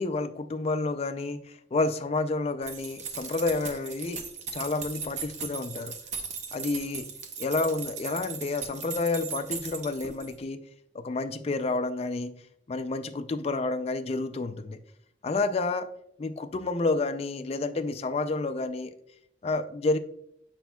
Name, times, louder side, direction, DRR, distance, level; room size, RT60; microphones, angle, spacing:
voice 1, 0.0-1.4 1.7-4.2 4.5-6.0 6.5-7.1 7.4-10.6 10.9-12.4 12.7-14.8 15.2-15.9 16.2-18.9 19.4-20.0, left 3 dB, 35° left, 9 dB, 0.4 m, -29 dB
sound 1, 2.6-10.4, right 6 dB, 40° right, 0.7 m, -38 dB
7.0 x 6.0 x 2.2 m, 0.74 s
head